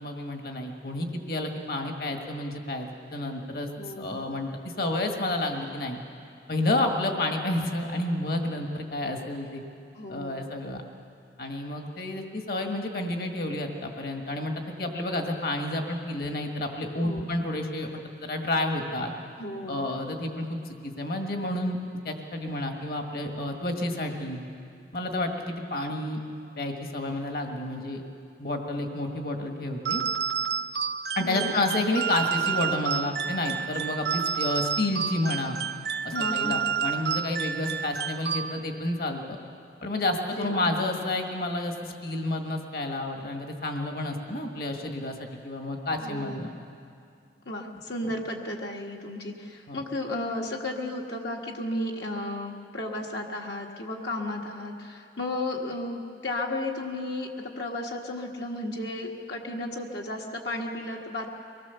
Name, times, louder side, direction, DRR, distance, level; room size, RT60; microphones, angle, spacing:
voice 1, 0.0-3.7 4.0-6.0 6.5-9.6 10.1-10.8 11.4-19.1 19.7-21.8 22.0-24.4 24.9-26.2 26.6-28.0 28.4-30.0 31.1-35.6 36.0-39.4 39.8-46.6 49.7-49.8, left 1 dB, 55° left, 3 dB, 1.7 m, -30 dB
voice 2, 3.8-4.2 9.9-10.4 17.0-17.3 19.4-19.8 31.2-31.5 36.1-36.7 40.3-40.7 46.0-46.5 47.4-61.3, left 1 dB, 75° left, -1 dB, 1.6 m, -34 dB
sound 1, 29.8-38.9, right 7 dB, 65° right, 0.6 m, -30 dB
24.0 x 19.5 x 7.0 m, 2.4 s
head